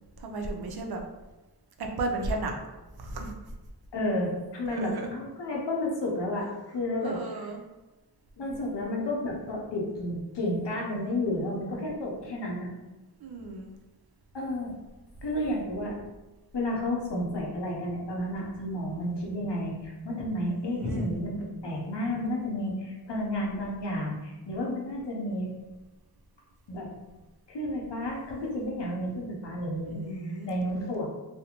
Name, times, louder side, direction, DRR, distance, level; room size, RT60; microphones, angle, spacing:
voice 1, 0.2-1.0 1.8-2.5 3.0-3.3 4.7-5.1 7.0-7.6 10.7-11.2 13.2-13.7 20.4-21.1 29.9-30.5, right 2 dB, 65° right, 2 dB, 0.5 m, -35 dB
voice 2, 3.9-7.2 8.4-12.7 14.3-14.7 15.2-16.0 16.5-21.4 21.6-25.5 26.7-26.9 27.5-31.1, left 1 dB, 85° left, -2 dB, 0.7 m, -31 dB
2.5 x 2.1 x 2.8 m, 1.1 s
wide cardioid pair, 55°, 40 cm